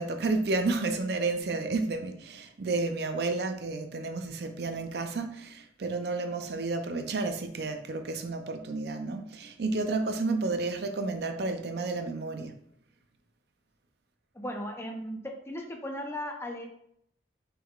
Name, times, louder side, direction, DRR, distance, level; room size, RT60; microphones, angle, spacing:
voice 1, 0.0-12.6, right 3 dB, 60° right, 7 dB, 0.5 m, -31 dB
voice 2, 14.3-16.7, equal, 15° left, 3 dB, 0.5 m, -37 dB
6.1 x 3.6 x 2.4 m, 0.73 s
head